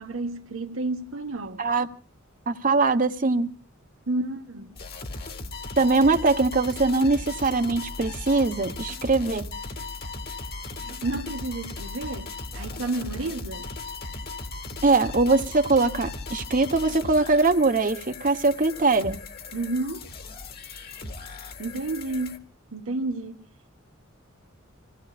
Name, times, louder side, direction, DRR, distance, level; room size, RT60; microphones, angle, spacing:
voice 1, 0.0-1.7 4.1-4.7 10.8-13.7 19.5-20.1 21.6-23.4, right 2 dB, 70° right, 1.5 m, -31 dB
voice 2, 2.5-3.5 5.8-9.5 14.8-19.2, right 3 dB, 40° right, 1.1 m, -22 dB
sound 1, 4.8-22.4, left 3 dB, 50° left, 2.3 m, -37 dB
27.5 x 18.0 x 2.5 m
head